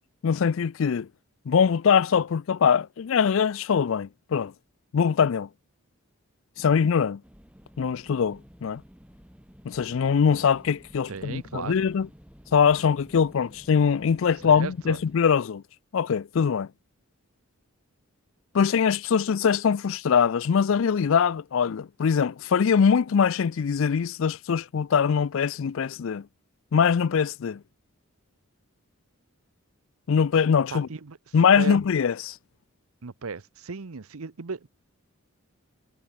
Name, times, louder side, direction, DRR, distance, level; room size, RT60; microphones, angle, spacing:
voice 1, 0.2-1.1 1.5-4.5 4.9-5.5 6.6-7.2 7.8-8.8 9.7-12.1 12.5-15.6 15.9-16.7 18.5-26.2 26.7-27.6 30.1-30.9 31.3-32.4, left 6 dB, 60° left, 0.4 m, -22 dB
sound 1, 7.2-15.1, equal, 5° right, 4.6 m, -52 dB
voice 2, 11.1-11.9 14.4-15.0 30.7-31.8 33.0-34.7, right 4 dB, 75° right, 0.8 m, -36 dB
head